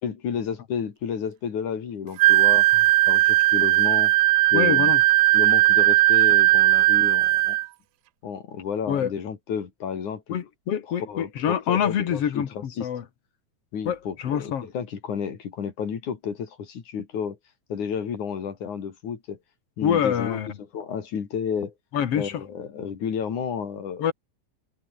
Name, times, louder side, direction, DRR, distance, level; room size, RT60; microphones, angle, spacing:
voice 1, 0.0-2.7 3.1-4.1 4.5-4.9 5.3-7.6 8.2-10.4 10.9-12.9 13.7-17.4 17.7-19.4 19.8-21.7 22.1-24.1, left 7 dB, 85° left, 4.4 m, -31 dB
Wind instrument woodwind instrument, 2.2-7.7, right 17 dB, 75° right, 2.0 m, -18 dB
voice 2, 4.5-5.0 8.9-9.1 10.3-13.0 13.9-14.7 19.8-20.5 21.9-22.4 24.0-24.1, left 9 dB, 55° left, 2.5 m, -26 dB
omnidirectional pair, 3.4 m